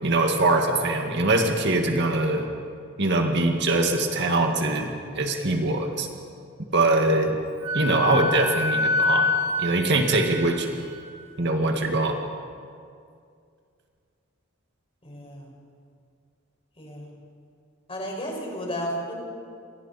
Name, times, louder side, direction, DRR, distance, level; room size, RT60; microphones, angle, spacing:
voice 1, 0.0-2.5 3.0-6.1 6.7-7.4 7.7-9.3 9.6-10.7 11.4-12.2, right 2 dB, 60° right, 3 dB, 2.0 m, -23 dB
Wind instrument woodwind instrument, 7.6-11.1, left 2 dB, 80° right, 4.5 m, -26 dB
voice 2, 15.0-15.5 16.8-17.1 17.9-19.1, equal, 30° left, -1 dB, 5.8 m, -33 dB
29.5 x 25.5 x 4.3 m, 2.3 s
head